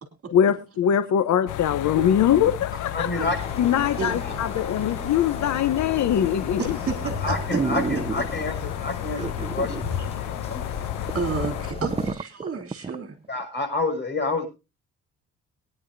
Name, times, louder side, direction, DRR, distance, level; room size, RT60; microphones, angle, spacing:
voice 1, 0.3-3.2 3.6-6.8, left 9 dB, 70° left, 13 dB, 1.0 m, -22 dB
sound 1, 1.5-11.7, left 16 dB, 85° left, 0.7 m, -33 dB
voice 2, 2.9-3.6 4.2-4.3 7.2-10.9 13.3-14.4, left 2 dB, 35° left, 4 dB, 6.1 m, -29 dB
sound 2, 3.4-12.1, left 4 dB, 20° left, 5.2 m, -35 dB
sound 3, 6.3-6.7 7.1-7.2 7.5-8.5 9.2-9.9 10.2-10.3 10.7-10.8 11.1-13.0 13.4-13.5, right 4 dB, 20° right, 0.9 m, -29 dB
voice 3, 6.6-7.3 11.1-13.1, right 5 dB, 50° right, 6 dB, 3.4 m, -31 dB
22.5 x 10.0 x 2.7 m, 0.28 s
cardioid pair, 90°, 30 cm